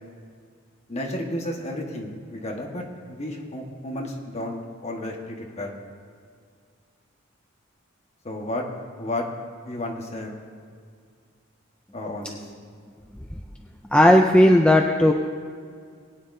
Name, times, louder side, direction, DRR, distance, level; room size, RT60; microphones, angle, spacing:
voice 1, 0.9-5.8 8.2-8.6 9.0-9.3 9.7-10.3 11.9-12.4, left 1 dB, 35° left, 0 dB, 1.4 m, -32 dB
voice 2, 13.9-15.1, left 1 dB, 5° left, 2 dB, 0.4 m, -15 dB
20.5 x 9.5 x 2.7 m, 2.1 s
head